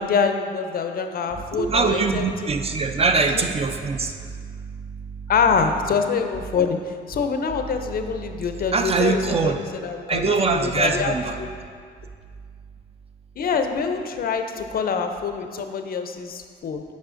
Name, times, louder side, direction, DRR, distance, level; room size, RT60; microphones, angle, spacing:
voice 1, 0.0-2.3 3.3-3.4 5.3-11.5 13.4-16.8, left 5 dB, 50° left, 6 dB, 0.5 m, -25 dB
voice 2, 1.2-4.1 8.7-9.6 10.1-11.4, right 4 dB, 30° right, 6 dB, 0.4 m, -22 dB
7.4 x 5.3 x 2.5 m, 2.1 s
cardioid pair, 90°, 20 cm